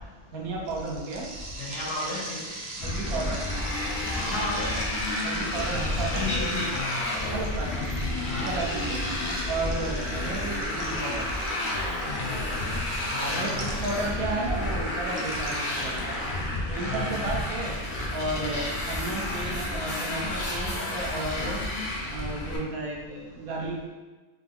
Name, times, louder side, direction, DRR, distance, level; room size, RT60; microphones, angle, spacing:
voice 1, 0.3-1.3 2.8-3.4 5.2-6.2 7.3-7.9 8.2-9.0 9.5-11.3 13.3-16.1 16.7-17.7 18.1-21.6 22.1-23.9, right 2 dB, 80° right, -1 dB, 1.3 m, -33 dB
sound 1, 0.7-14.3 15.1-16.9, right 2 dB, 60° right, 0.4 m, -41 dB
voice 2, 1.6-2.5 4.2-4.8 6.1-7.0 8.3-8.5 12.1-12.5 13.1-13.9 16.8-17.4, left 2 dB, 65° left, -6 dB, 1.2 m, -33 dB
Motorcycle, 2.8-22.6, left 1 dB, 45° left, 0.7 m, -30 dB
3.6 x 3.3 x 3.6 m, 1.3 s
omnidirectional pair, 1.5 m